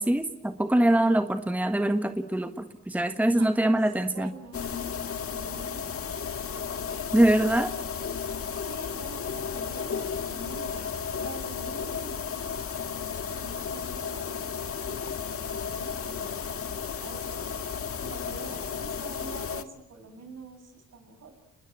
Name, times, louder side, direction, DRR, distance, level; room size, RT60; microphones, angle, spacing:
voice 1, 0.0-4.3 7.1-7.7, right 1 dB, 5° right, 8 dB, 1.4 m, -23 dB
voice 2, 3.3-4.8 5.2-5.9 8.5-10.9 11.1-12.6 13.3-16.4 17.0-17.7 18.0-21.3, right 4 dB, 60° right, 6 dB, 7.3 m, -46 dB
sound 1, 4.5-19.6, left 6 dB, 50° left, 1.7 m, -34 dB
30.0 x 20.5 x 8.9 m, 0.87 s
cardioid pair, 90°, 30 cm